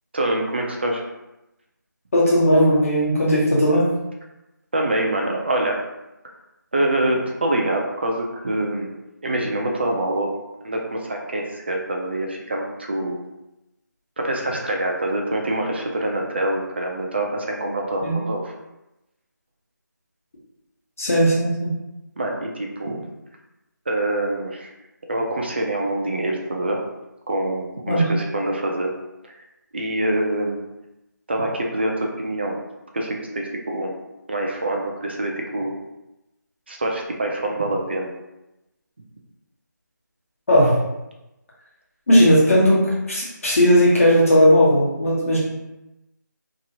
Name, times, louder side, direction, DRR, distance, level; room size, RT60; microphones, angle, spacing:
voice 1, 0.1-1.0 4.7-5.9 6.7-8.9 9.2-10.4 10.6-13.2 14.2-18.5 22.2-23.1 23.9-24.7 25.1-26.8 27.3-28.9 29.3-29.4 29.7-30.6 31.3-32.6 32.9-33.9 34.3-35.7 36.7-38.1, right 1 dB, 35° right, 0 dB, 0.4 m, -25 dB
voice 2, 2.1-3.8 18.0-18.1 21.0-21.7 27.9-28.1 40.5-40.7 42.1-42.8 43.1-45.4, equal, 45° left, -5 dB, 1.0 m, -16 dB
2.9 x 2.5 x 2.8 m, 0.94 s
figure-of-eight pair, 170°, 10 cm